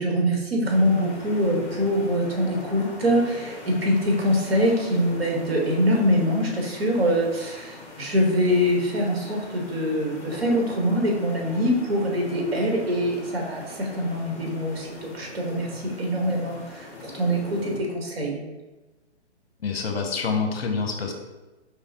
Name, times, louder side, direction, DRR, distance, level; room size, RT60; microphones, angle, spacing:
voice 1, 0.0-18.4, equal, 60° right, -1 dB, 1.3 m, -24 dB
sound 1, 0.6-17.8, left 3 dB, 25° left, 0.9 m, -41 dB
voice 2, 19.6-21.1, left 5 dB, 60° left, 3 dB, 0.7 m, -26 dB
4.7 x 3.2 x 2.8 m, 1.1 s
figure-of-eight pair, 145°, 34 cm